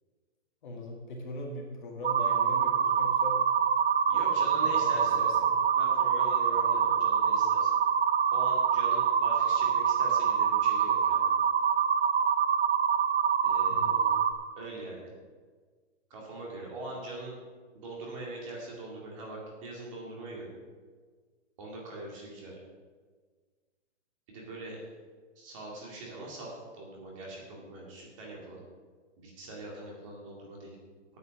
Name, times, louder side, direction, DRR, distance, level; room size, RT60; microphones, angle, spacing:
voice 1, 0.6-3.4 4.1-5.6 6.6-6.9 13.7-14.2, left 1 dB, 40° left, -1 dB, 2.2 m, -41 dB
sound 1, 2.0-14.3, right 7 dB, 55° right, 0.8 m, -25 dB
voice 2, 4.1-5.2 5.7-7.7 8.3-11.4 13.4-14.0 14.6-15.1 16.1-17.4 17.7-20.6 21.6-22.6 24.3-24.8 25.4-28.6 29.2-30.8, right 2 dB, 25° right, -2 dB, 2.2 m, -42 dB
9.4 x 8.4 x 6.3 m, 1.5 s
hypercardioid pair, 170°, 37 cm